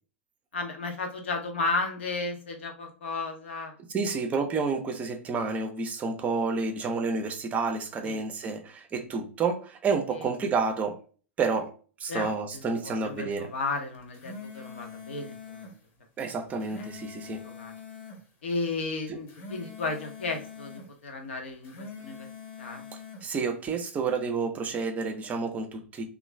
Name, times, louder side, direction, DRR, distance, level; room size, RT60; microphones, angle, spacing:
voice 1, 0.5-3.7 8.0-8.2 10.2-10.3 12.1-15.7 17.4-17.7 18.4-22.3 22.6-22.8, left 3 dB, 60° left, 0.8 m, -34 dB
voice 2, 3.9-11.0 11.4-11.7 12.0-13.5 16.2-17.5 19.1-19.2 23.2-26.0, right 4 dB, 20° right, 0.6 m, -30 dB
sound 1, 13.9-15.8 16.4-18.2 19.1-20.9 21.5-23.3, left 5 dB, 40° left, 1.0 m, -44 dB
3.0 x 2.5 x 3.1 m
figure-of-eight pair, 95°, 7 cm